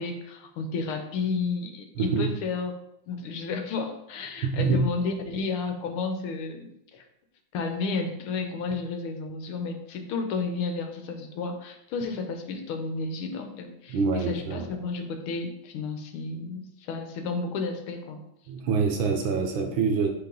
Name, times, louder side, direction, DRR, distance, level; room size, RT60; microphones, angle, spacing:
voice 1, 0.0-2.8 3.1-7.1 7.5-18.2, left 4 dB, 80° left, 5 dB, 1.6 m, -32 dB
voice 2, 2.0-2.3 4.4-4.9 13.9-14.7 18.5-20.1, right 4 dB, 70° right, 4 dB, 1.4 m, -25 dB
7.8 x 3.6 x 3.8 m, 0.82 s
omnidirectional pair, 2.4 m